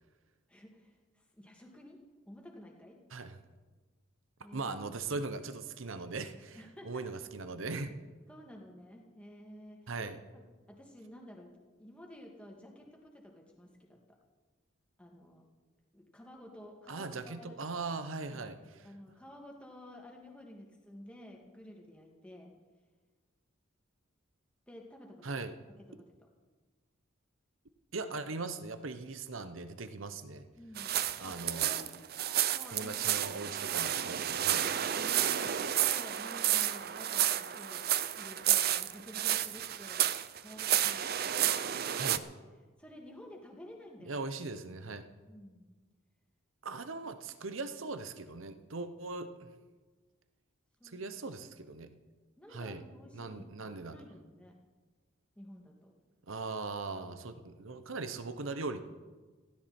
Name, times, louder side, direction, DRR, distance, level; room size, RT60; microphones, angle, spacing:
voice 1, 0.5-1.0 1.3-2.0 2.3-3.0 4.4-4.7 6.6-7.1 8.3-9.9 10.7-11.5 11.8-14.0 15.0-15.4 15.9-17.6 18.3-18.5 18.8-22.5 24.7-25.4 25.9-26.0 30.6-30.9 31.2-31.9 32.5-33.0 33.3-33.4 35.0-40.1 40.4-42.2 42.8-44.2 45.3-45.8 50.8-51.1 52.4-54.5 55.4-55.9, equal, 5° left, -1 dB, 2.2 m, -52 dB
voice 2, 4.5-7.9 9.9-10.2 16.9-18.9 25.2-25.5 27.9-30.4 31.2-31.8 32.7-34.7 42.0-42.2 44.0-45.1 46.6-49.5 50.8-51.9 52.5-52.8 53.1-54.0 56.3-58.8, right 3 dB, 70° right, 10 dB, 0.9 m, -40 dB
sound 1, 30.8-42.2, right 11 dB, 45° right, 0.5 m, -31 dB
16.5 x 16.0 x 4.4 m, 1.3 s
head